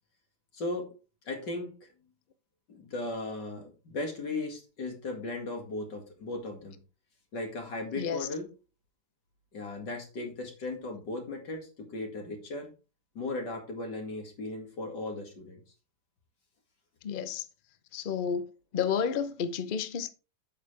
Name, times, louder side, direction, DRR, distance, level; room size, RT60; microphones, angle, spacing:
voice 1, 0.5-0.9 1.3-1.9 2.7-6.8 7.3-8.5 9.5-12.7 13.1-15.6, left 2 dB, 80° left, 2.7 m, -37 dB
voice 2, 8.0-8.3 17.0-17.5 17.9-18.5 18.7-20.1, left 7 dB, 60° left, 0.5 m, -31 dB
8.6 x 6.6 x 3.3 m
omnidirectional pair, 1.9 m